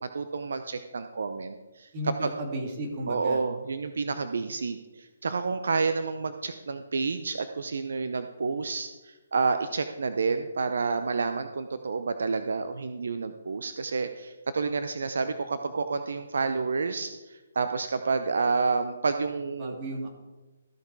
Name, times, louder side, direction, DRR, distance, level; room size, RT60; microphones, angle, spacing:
voice 1, 0.0-2.3 3.1-19.8, right 4 dB, 70° right, 9 dB, 0.6 m, -29 dB
voice 2, 1.9-3.4 19.6-20.1, right 1 dB, 35° right, 0 dB, 2.6 m, -34 dB
14.0 x 6.9 x 4.8 m, 1.2 s
hypercardioid pair, 145°, 0 cm